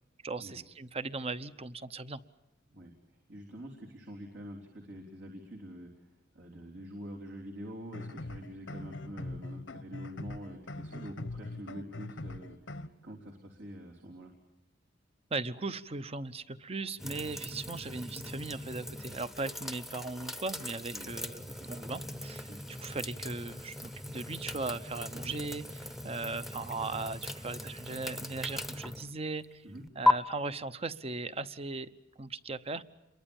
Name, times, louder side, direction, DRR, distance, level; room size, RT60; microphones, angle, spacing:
voice 1, 0.2-2.2 15.3-29.6 30.0-31.9 32.2-32.8, right 3 dB, 35° right, 14 dB, 0.9 m, -38 dB
voice 2, 3.3-14.3 20.9-21.1 21.5-21.9 22.5-22.6 25.1-25.3 29.6-29.8, equal, 75° right, 0 dB, 3.7 m, -46 dB
sound 1, 7.8-12.9, left 2 dB, 90° left, 1.3 m, -42 dB
sound 2, 17.0-30.1, left 2 dB, ahead, 0.9 m, -37 dB
28.0 x 23.0 x 7.2 m, 0.95 s
head